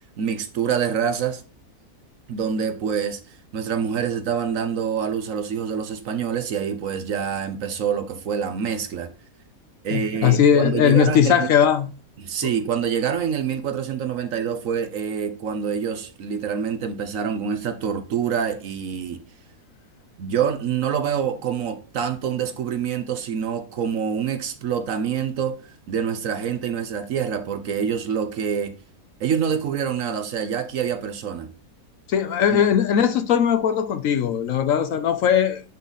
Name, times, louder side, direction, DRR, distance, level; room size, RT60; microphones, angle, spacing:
voice 1, 0.2-1.4 2.3-9.1 9.8-11.5 12.2-19.2 20.2-28.8 29.2-31.5 32.5-32.6, right 7 dB, 60° right, 1.1 m, -26 dB
voice 2, 9.9-11.9 32.1-35.6, left 8 dB, 65° left, 0.9 m, -19 dB
9.1 x 3.9 x 4.0 m
omnidirectional pair, 1.7 m